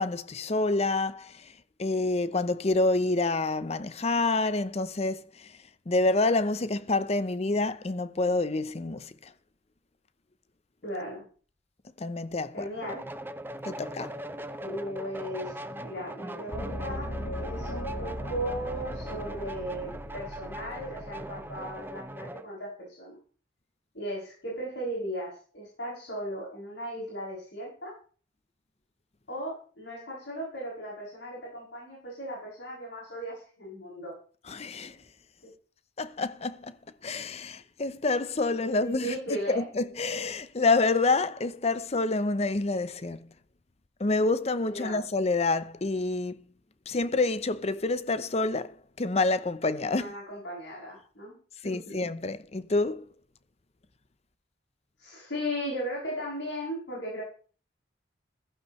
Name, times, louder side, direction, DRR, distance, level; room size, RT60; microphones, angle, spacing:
voice 1, 0.0-1.3 1.8-5.5 5.9-9.1 12.0-12.7 13.6-14.2 34.5-35.0 36.0-36.7 37.0-43.2 44.0-46.4 46.9-50.1 51.6-53.1, left 3 dB, 35° left, 0.7 m, -27 dB
voice 2, 10.8-11.2 12.5-13.1 14.6-17.1 17.4-23.1 23.9-28.0 29.3-34.2 35.4-35.5 38.7-39.7 44.7-45.0 49.9-51.4 51.6-52.0 55.0-57.2, equal, 80° left, 7.8 m, -37 dB
sound 1, 12.8-22.5, right 1 dB, 10° right, 0.7 m, -40 dB
Gong, 16.5-21.8, equal, 50° left, 5.3 m, -38 dB
15.5 x 14.5 x 3.2 m
head